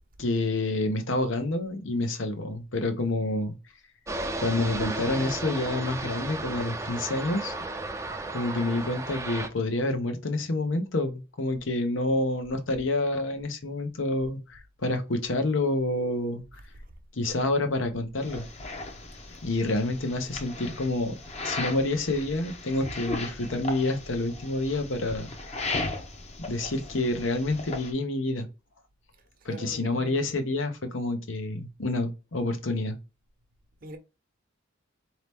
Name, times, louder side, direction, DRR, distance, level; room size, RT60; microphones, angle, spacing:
voice 1, 0.2-3.6 4.4-7.5 8.3-16.4 17.1-18.5 19.4-21.2 21.4-25.8 26.4-28.5 29.4-33.0, left 2 dB, 80° left, 0.9 m, -28 dB
sound 1, 4.1-9.5, right 2 dB, 15° right, 0.5 m, -34 dB
voice 2, 16.5-16.9 29.1-30.3 33.8-34.0, right 2 dB, 50° right, 0.8 m, -44 dB
sound 2, 18.2-27.9, left 2 dB, 35° left, 0.8 m, -37 dB
4.2 x 2.9 x 3.4 m
head